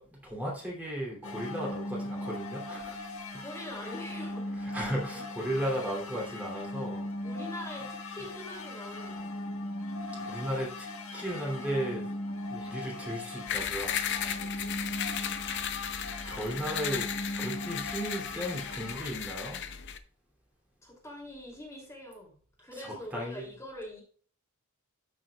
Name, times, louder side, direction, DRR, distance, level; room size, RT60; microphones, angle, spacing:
voice 1, 0.0-3.0 3.3-3.4 4.7-7.1 10.2-10.9 11.1-12.1 12.5-14.0 15.4-15.6 16.2-17.1 17.4-19.6 22.8-23.5, equal, 5° right, -4 dB, 2.9 m, -35 dB
sound 1, 1.2-19.0, left 1 dB, 75° left, 1.5 m, -39 dB
voice 2, 3.0-4.5 4.7-5.3 7.2-9.4 10.1-10.4 14.2-14.5 20.8-24.0, left 1 dB, 15° left, -1 dB, 2.8 m, -44 dB
sound 2, 13.5-20.0, left 8 dB, 55° left, 0.7 m, -35 dB
13.5 x 6.3 x 2.3 m, 0.43 s
head